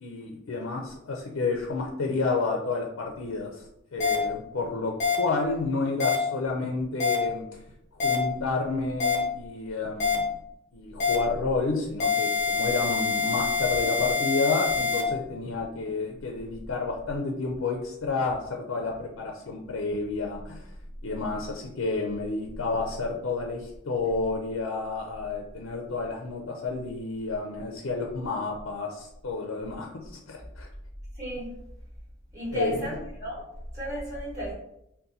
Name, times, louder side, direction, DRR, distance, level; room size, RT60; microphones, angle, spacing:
voice 1, 0.0-3.6 3.9-7.4 8.0-10.3 10.7-20.7 21.0-30.7 32.5-32.7, left 3 dB, 80° left, 1 dB, 0.5 m, -30 dB
sound 1, 4.0-4.1 5.0-5.1 6.0-6.1 7.0-7.1 8.0-8.1 9.0-9.1 10.0-10.1 11.0-11.1 12.0-15.0, left 5 dB, 40° left, 1.0 m, -25 dB
voice 2, 32.3-33.4 33.7-34.5, equal, 15° right, -6 dB, 1.4 m, -33 dB
4.0 x 2.2 x 4.0 m, 0.80 s
head